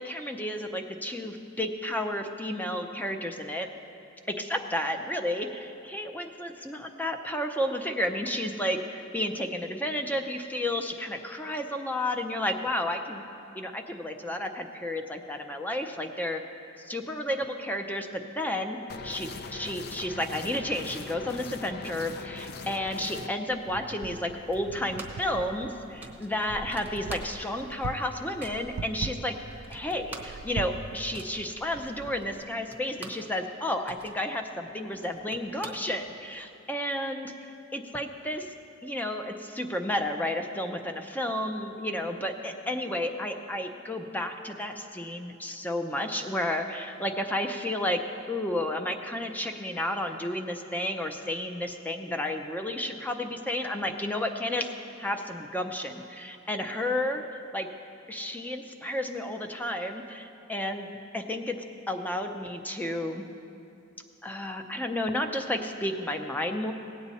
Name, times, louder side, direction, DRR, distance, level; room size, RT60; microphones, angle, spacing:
voice 1, 0.0-3.7 4.3-13.2 13.5-16.4 16.9-18.8 19.0-29.4 29.7-37.3 37.7-38.6 38.8-48.0 48.3-54.7 55.0-57.2 57.5-57.7 58.1-60.9 61.1-61.6 61.9-63.3 64.2-66.7, left 1 dB, 10° left, 5 dB, 0.6 m, -32 dB
sound 1, 18.9-23.3, left 4 dB, 50° left, 0.5 m, -40 dB
Wind, 23.5-32.4, right 4 dB, 65° right, 0.4 m, -42 dB
sound 2, 24.5-25.3 25.6-25.7 26.0-27.7 28.0-28.7 29.2-29.3 29.5-33.3 33.7-36.4, right 3 dB, 10° right, 1.0 m, -46 dB
17.5 x 8.5 x 4.1 m, 2.7 s
head